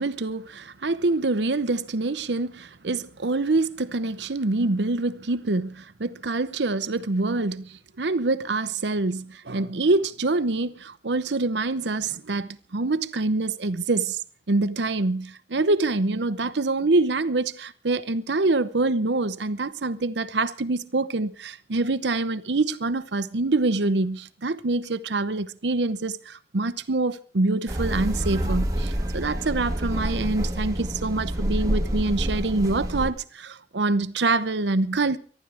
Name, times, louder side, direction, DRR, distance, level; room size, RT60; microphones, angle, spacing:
voice 1, 0.0-14.2 14.5-35.2, right 2 dB, 75° right, 0.8 m, -25 dB
sound 1, 27.7-33.1, right 1 dB, 20° right, 1.5 m, -27 dB
24.5 x 12.0 x 3.5 m
head